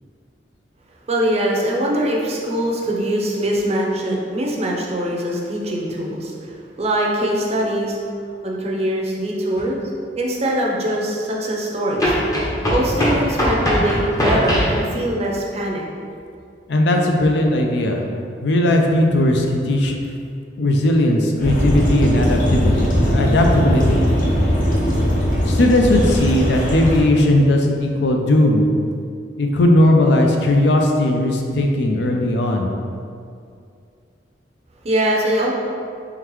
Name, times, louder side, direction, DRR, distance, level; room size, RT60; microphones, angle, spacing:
voice 1, 1.1-6.5 6.8-8.0 8.4-9.8 10.2-12.1 12.7-15.8 34.8-35.5, right 1 dB, 35° right, -2 dB, 0.6 m, -22 dB
sound 1, 9.6-9.7 12.0-14.8, equal, 20° left, 0.7 m, -20 dB
voice 2, 16.7-18.0 18.4-19.9 20.6-24.0 25.5-28.6 29.4-32.7, left 1 dB, 70° left, 2 dB, 0.5 m, -17 dB
sound 2, 21.4-27.0, equal, 50° left, 0.8 m, -19 dB
3.7 x 3.3 x 3.1 m, 2.4 s
head